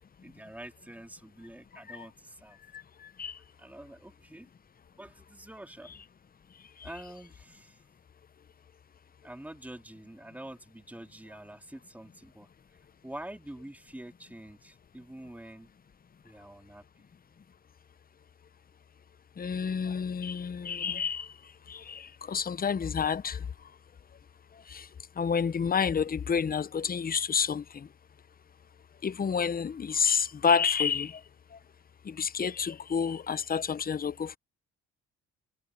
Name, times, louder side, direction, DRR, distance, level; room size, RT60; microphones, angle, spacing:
voice 1, 0.2-2.6 3.6-4.5 5.0-5.9 6.8-7.8 9.2-12.5 13.0-15.7 16.2-16.8, right 1 dB, 5° right, 2.8 m, -46 dB
voice 2, 19.4-21.3 21.7-22.0 22.3-23.4 24.7-24.8 25.2-27.6 29.0-31.1 32.1-34.4, left 6 dB, 30° left, 0.7 m, -29 dB
cardioid pair, 90°, 30 cm